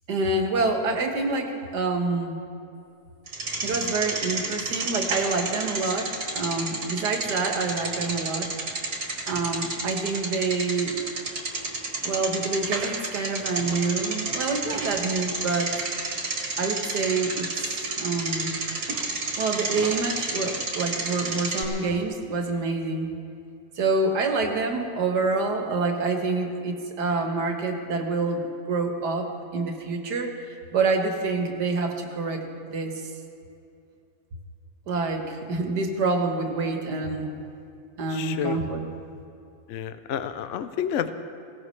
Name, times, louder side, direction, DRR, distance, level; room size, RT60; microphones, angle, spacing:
voice 1, 0.1-2.4 3.6-8.5 9.3-11.0 12.0-15.7 16.6-18.5 19.4-23.1 23.8-32.4 32.7-33.1 34.9-37.4 38.0-38.8, right 3 dB, 80° right, 3 dB, 2.0 m, -27 dB
Bicycle, 3.3-21.6, right 3 dB, 60° right, 2.2 m, -31 dB
voice 2, 38.1-38.6 39.7-41.1, left 9 dB, 65° left, 11 dB, 0.7 m, -29 dB
20.5 x 17.0 x 3.3 m, 2.6 s
omnidirectional pair, 1.7 m